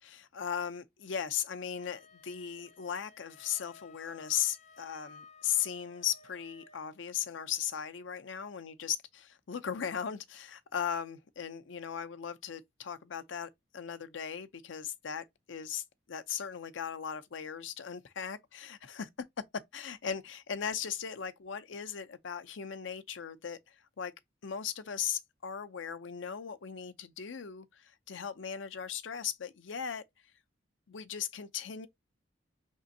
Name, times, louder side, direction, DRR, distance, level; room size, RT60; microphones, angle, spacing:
voice 1, 0.0-9.2 9.5-19.1 19.7-24.1 24.4-30.0 30.9-31.9, left 8 dB, 80° left, 0.5 m, -37 dB
Wind instrument woodwind instrument, 1.8-7.0, left 4 dB, 35° left, 0.5 m, -57 dB
5.1 x 3.6 x 2.7 m
head